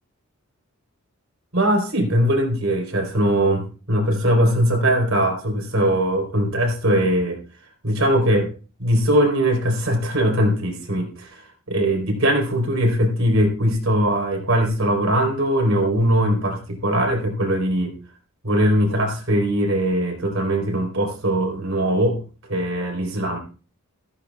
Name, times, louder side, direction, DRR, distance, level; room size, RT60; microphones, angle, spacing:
voice 1, 1.5-7.4 7.8-8.5 8.8-11.4 11.7-17.9 18.4-22.2 22.5-23.4, right 1 dB, 65° right, 2 dB, 3.9 m, -20 dB
14.0 x 14.0 x 2.3 m, 0.37 s
head